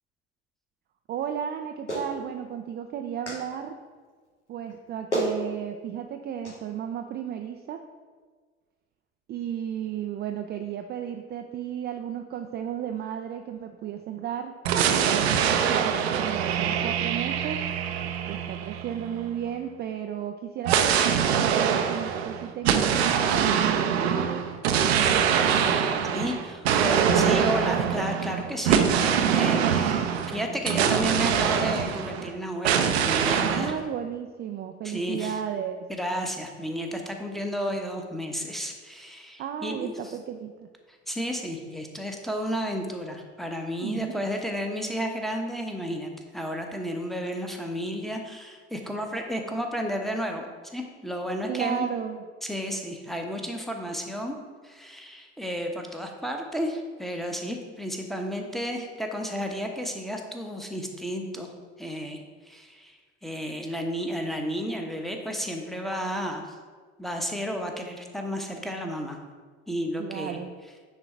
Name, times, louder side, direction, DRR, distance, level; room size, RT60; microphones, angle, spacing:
voice 1, 1.1-3.7 4.5-7.8 9.3-14.5 15.0-17.6 18.3-24.5 33.5-35.9 39.4-40.7 43.8-44.2 51.5-52.2 70.0-70.5, right 9 dB, 30° right, 5 dB, 0.4 m, -34 dB
Clapping, 1.9-2.1 3.3-3.4 4.7-4.8 5.1-5.4 6.4-6.6, right 1 dB, 90° left, 1.0 m, -28 dB
sound 1, 14.6-19.4 20.6-32.3 32.6-33.7, right 8 dB, 65° right, 0.6 m, -24 dB
voice 2, 26.1-33.8 34.8-35.3 35.9-39.9 41.1-50.4 50.7-51.9 52.4-54.3 54.6-61.5 61.8-66.4 67.0-69.2 69.7-70.4, equal, ahead, 2 dB, 1.0 m, -32 dB
9.8 x 3.9 x 4.4 m, 1.5 s
figure-of-eight pair, 55°, 34 cm